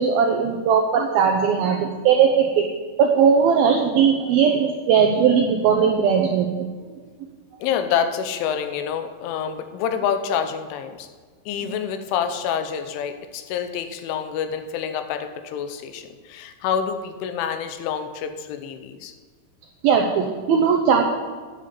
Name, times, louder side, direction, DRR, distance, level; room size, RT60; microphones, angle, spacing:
voice 1, 0.0-2.7 3.0-6.7 7.2-7.3 19.8-21.0, right 6 dB, 85° right, 2 dB, 2.1 m, -19 dB
voice 2, 7.6-11.1 11.5-19.1, left 8 dB, 90° left, 8 dB, 3.4 m, -27 dB
10.0 x 7.8 x 8.4 m, 1.5 s
omnidirectional pair, 5.4 m